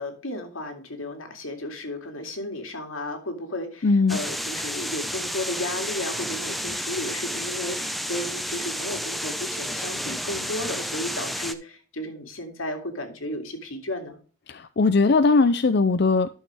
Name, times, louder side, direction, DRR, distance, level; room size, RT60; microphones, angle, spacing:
voice 1, 0.0-14.2, left 1 dB, 85° left, 2.4 m, -34 dB
voice 2, 3.8-4.2 14.5-16.3, left 3 dB, 55° left, 0.5 m, -19 dB
sound 1, 4.1-11.5, equal, ahead, 0.6 m, -31 dB
12.0 x 6.5 x 3.3 m
head